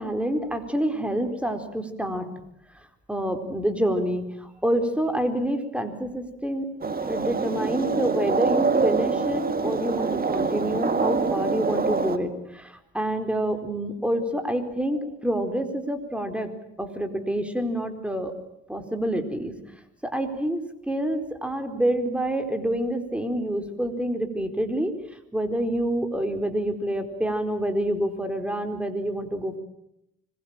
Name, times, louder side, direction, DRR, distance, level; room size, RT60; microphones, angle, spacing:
voice 1, 0.0-2.3 3.1-6.7 7.0-16.5 16.8-18.3 18.7-19.5 20.0-24.9 25.3-29.6, right 1 dB, 5° right, 6 dB, 4.4 m, -27 dB
sound 1, 6.8-12.2, right 4 dB, 30° right, 2.1 m, -25 dB
26.0 x 22.0 x 9.0 m, 0.82 s
cardioid pair, 90°, 30 cm